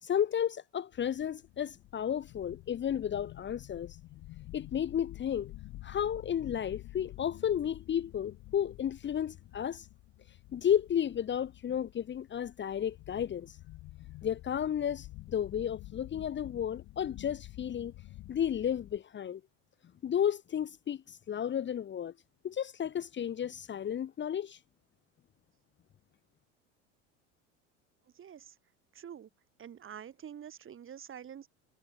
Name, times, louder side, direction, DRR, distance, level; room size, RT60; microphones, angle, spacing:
voice 1, 0.0-4.0 4.5-5.5 5.8-9.9 10.5-13.6 14.2-17.9 18.3-19.4 20.0-22.1 22.4-24.6, left 9 dB, 30° left, 1.0 m, -33 dB
sound 1, 0.9-19.0, left 17 dB, 55° left, 2.5 m, -50 dB
voice 2, 28.1-28.6 28.9-29.3 29.6-31.5, right 9 dB, 35° right, 2.0 m, -47 dB
hypercardioid pair, 85°, 37 cm